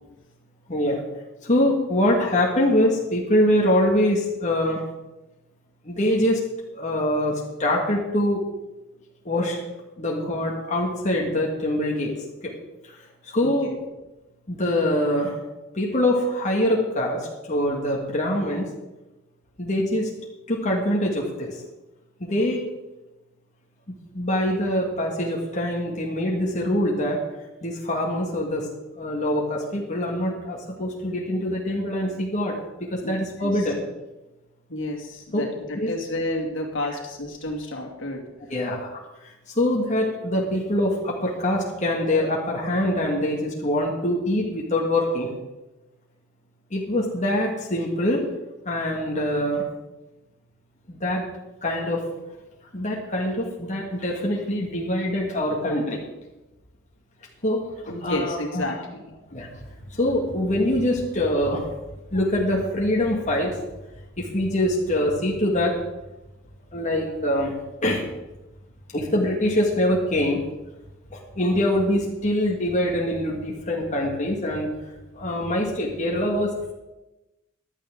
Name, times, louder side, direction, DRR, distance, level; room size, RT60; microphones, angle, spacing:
voice 1, 0.7-1.0 1.4-4.8 5.9-6.4 6.8-8.4 9.3-9.6 10.0-12.1 12.4-12.6 13.3-13.7 14.5-15.4 15.7-18.7 19.6-20.1 20.5-21.6 22.2-22.6 24.1-27.2 27.6-28.7 29.0-33.8 35.3-35.5 35.8-35.9 38.5-39.0 39.6-45.3 46.7-48.2 48.7-49.7 50.9-51.2 51.6-52.0 52.7-56.0 57.4-58.7 59.3-59.5 59.9-61.7 62.1-63.6 64.2-65.7 66.7-67.5 67.8-68.0 68.9-70.4 71.1-74.7 75.1-76.7, left 1 dB, 35° left, -2 dB, 1.8 m, -24 dB
voice 2, 13.4-13.8 33.0-33.1 33.4-33.7 34.7-38.3 57.9-59.2, left 1 dB, 65° left, 1 dB, 2.3 m, -31 dB
15.0 x 11.5 x 3.8 m, 1.0 s
head